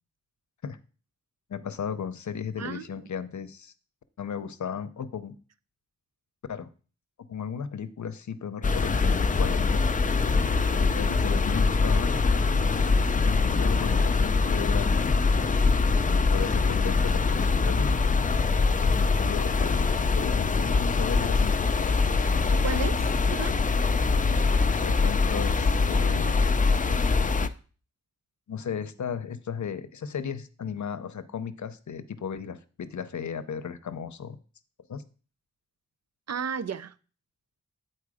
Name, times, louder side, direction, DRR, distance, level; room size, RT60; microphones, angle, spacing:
voice 1, 1.5-3.7 4.2-5.4 6.5-6.7 7.3-9.8 10.7-12.2 13.2-15.2 16.1-17.9 18.8-21.6 22.3-22.5 24.8-26.4 28.5-34.4 34.9-35.0, left 7 dB, 75° left, 0.6 m, -35 dB
voice 2, 2.6-3.0 22.5-23.5 36.3-36.9, right 6 dB, 60° right, 0.5 m, -34 dB
sound 1, 8.6-27.5, left 4 dB, 30° left, 0.4 m, -23 dB
8.5 x 4.4 x 4.8 m
wide cardioid pair, 90°, 29 cm